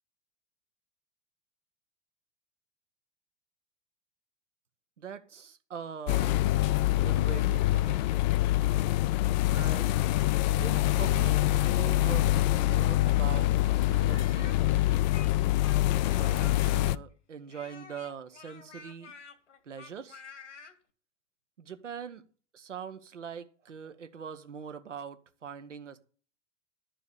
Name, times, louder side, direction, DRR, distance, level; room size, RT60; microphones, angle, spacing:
voice 1, 5.0-6.5 6.9-8.2 9.5-9.9 10.5-13.5 13.9-15.0 16.1-19.1 19.6-20.2 21.6-22.2 22.5-26.0, right 7 dB, 75° right, 1.0 m, -42 dB
sound 1, 6.1-17.0, left 15 dB, 40° left, 0.4 m, -25 dB
Speech, 14.0-16.9 17.5-20.7, left 6 dB, 70° left, 1.8 m, -49 dB
11.5 x 4.8 x 8.0 m
figure-of-eight pair, 85°, 36 cm